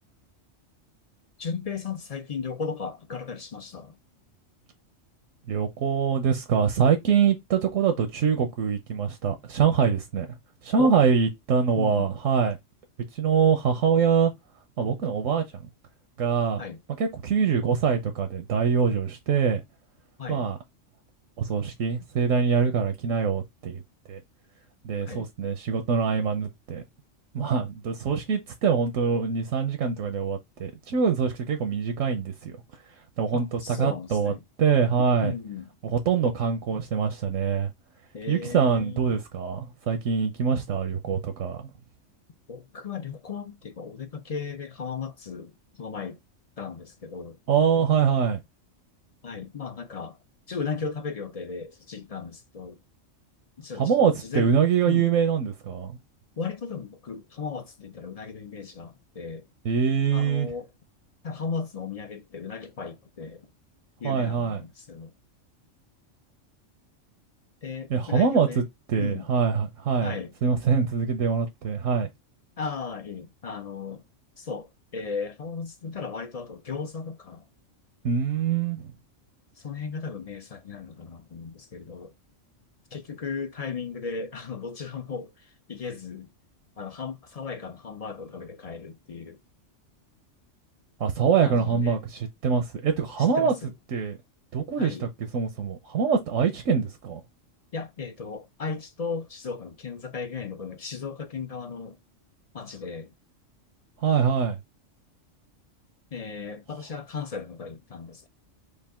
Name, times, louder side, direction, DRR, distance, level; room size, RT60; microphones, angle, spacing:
voice 1, 1.4-4.0 10.8-10.9 11.7-12.1 16.6-16.8 20.2-20.5 25.1-25.3 33.3-34.4 35.2-35.7 38.1-39.1 42.5-46.2 46.6-47.4 49.2-50.2 50.5-52.8 53.6-54.5 54.8-55.1 56.4-59.5 60.1-60.7 61.2-63.5 64.0-65.1 67.6-68.6 69.0-69.3 70.0-70.3 72.6-74.0 74.4-77.4 79.6-82.1 82.9-86.3 86.8-89.4 91.4-92.0 93.4-93.7 94.8-95.1 97.7-102.0 102.5-103.1 106.1-108.3, left 5 dB, 45° left, 0.5 m, -36 dB
voice 2, 5.5-10.3 10.6-12.6 13.1-14.3 14.8-15.4 16.2-16.6 17.0-19.6 20.3-20.6 21.4-23.8 24.1-24.2 24.8-26.8 27.3-32.6 33.2-34.3 34.6-35.3 35.8-37.7 38.3-41.7 47.5-48.4 53.8-56.0 59.6-60.5 64.0-64.6 67.9-68.6 68.9-70.2 70.4-72.1 78.0-78.9 91.0-93.5 93.9-94.2 94.5-97.2 104.0-104.6, right 6 dB, 85° right, 1.3 m, -24 dB
5.3 x 2.5 x 3.6 m
omnidirectional pair, 1.3 m